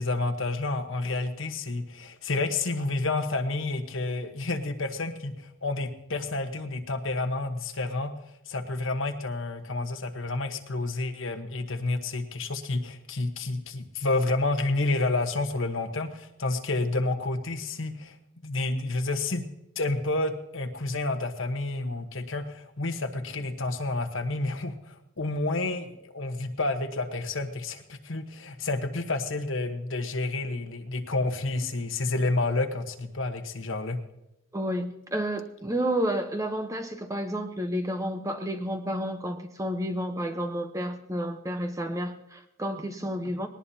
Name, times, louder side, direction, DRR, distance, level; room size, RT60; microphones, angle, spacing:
voice 1, 0.0-8.1 8.5-18.2 18.4-19.5 19.7-34.0, left 2 dB, 65° left, 6 dB, 1.2 m, -30 dB
voice 2, 34.5-43.5, equal, 15° right, 6 dB, 0.9 m, -31 dB
20.5 x 19.0 x 2.8 m, 0.88 s
head